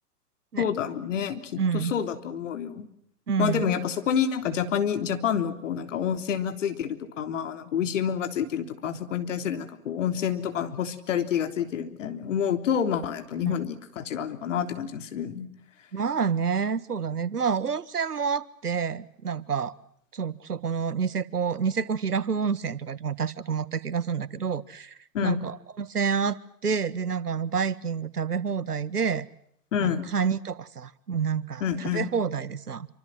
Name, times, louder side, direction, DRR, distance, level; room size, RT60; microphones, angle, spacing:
voice 1, 0.6-2.9 3.4-15.5 25.1-25.4 29.7-30.1 31.6-32.1, left 8 dB, 50° left, 8 dB, 3.6 m, -28 dB
voice 2, 1.6-1.9 3.3-3.7 13.5-13.6 15.9-19.7 20.1-29.3 29.8-32.9, right 6 dB, 80° right, 16 dB, 1.7 m, -28 dB
27.0 x 25.5 x 7.5 m, 0.67 s
figure-of-eight pair, 130°, 46 cm